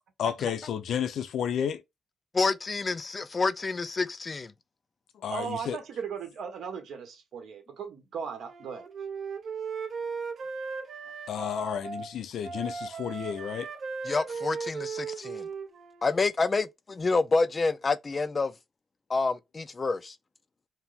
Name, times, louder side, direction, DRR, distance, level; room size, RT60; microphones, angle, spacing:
voice 1, 0.2-1.8 5.1-5.8 11.3-13.7, left 8 dB, 75° left, 0.6 m, -32 dB
voice 2, 2.3-4.5 14.1-15.5 16.0-18.5 19.1-20.2, left 3 dB, 30° left, 0.4 m, -28 dB
voice 3, 5.3-8.8, right 6 dB, 75° right, 1.2 m, -37 dB
Wind instrument woodwind instrument, 8.4-12.1 12.4-16.1, right 5 dB, 50° right, 0.8 m, -37 dB
4.3 x 2.1 x 3.6 m
cardioid pair, 125°, 0 cm